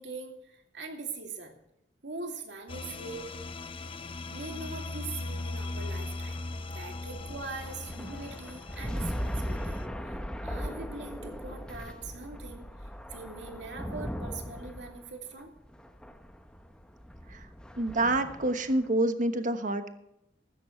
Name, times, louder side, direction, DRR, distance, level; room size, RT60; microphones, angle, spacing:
voice 1, 0.0-1.5 2.0-3.3 4.3-6.4 6.7-9.8 10.1-12.7 13.1-15.5, right 3 dB, 70° right, 3 dB, 2.6 m, -42 dB
sound 1, 2.7-9.9, left 2 dB, 30° left, 0.6 m, -39 dB
sound 2, 5.3-18.9, equal, 5° left, 0.9 m, -39 dB
voice 2, 17.8-19.9, right 2 dB, 45° right, 8 dB, 1.2 m, -27 dB
15.0 x 13.0 x 3.2 m, 0.82 s
head